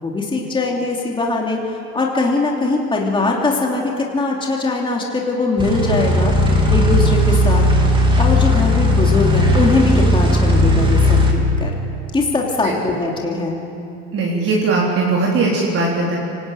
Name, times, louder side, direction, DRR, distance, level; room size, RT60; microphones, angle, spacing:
voice 1, 0.0-7.6 8.2-11.7 12.1-13.6, left 3 dB, 10° left, -1 dB, 3.0 m, -21 dB
sound 1, 5.6-11.3, left 1 dB, 10° right, 3.0 m, -15 dB
voice 2, 14.1-16.2, right 3 dB, 30° right, -4 dB, 4.1 m, -19 dB
25.5 x 19.0 x 8.9 m, 2.7 s
supercardioid pair, 140°, 43 cm